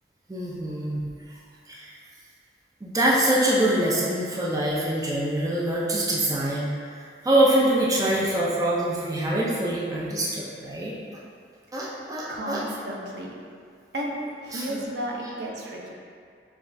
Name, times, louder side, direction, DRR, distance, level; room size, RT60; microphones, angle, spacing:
voice 1, 0.3-1.0 1.7-1.9 2.8-10.9 11.7-12.6 14.5-14.8, right 1 dB, 20° right, -5 dB, 0.4 m, -24 dB
voice 2, 12.3-13.4 13.9-14.1 14.4-15.9, right 1 dB, 75° right, -1 dB, 0.6 m, -33 dB
5.8 x 2.3 x 2.6 m, 2.2 s
head